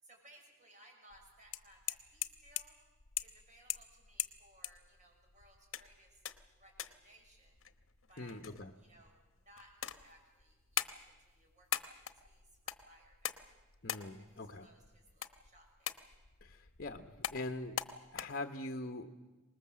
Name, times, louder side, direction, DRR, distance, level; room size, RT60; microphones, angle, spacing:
voice 1, 0.0-2.8 3.2-6.2 6.6-7.6 8.1-13.5 14.2-16.1, right 1 dB, 35° right, 2 dB, 6.2 m, -63 dB
sound 1, 1.1-18.2, left 11 dB, 65° left, 1.1 m, -44 dB
voice 2, 8.2-8.7 13.8-14.7 16.4-17.8 18.1-19.1, left 2 dB, 45° left, 6 dB, 1.1 m, -42 dB
25.5 x 20.0 x 7.6 m, 1.2 s
head